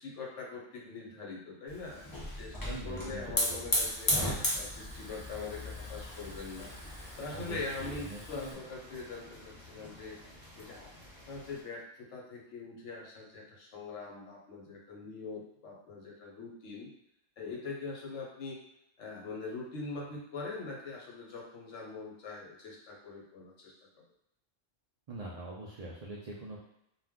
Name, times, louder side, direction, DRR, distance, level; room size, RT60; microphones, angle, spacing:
voice 1, 0.0-4.2 4.5-6.7 7.2-10.2 10.6-10.9 11.2-16.9 17.4-18.6 19.0-24.0, left 4 dB, 70° left, -3 dB, 1.1 m, -43 dB
Hiss / Fire, 1.7-8.5, left 1 dB, 35° left, 0.3 m, -35 dB
voice 2, 2.7-3.9 7.3-8.6 25.1-26.6, right 2 dB, 80° right, -4 dB, 0.3 m, -43 dB
sound 1, 4.9-11.6, left 1 dB, 25° right, 1.0 m, -53 dB
2.4 x 2.2 x 3.5 m, 0.82 s
omnidirectional pair, 1.3 m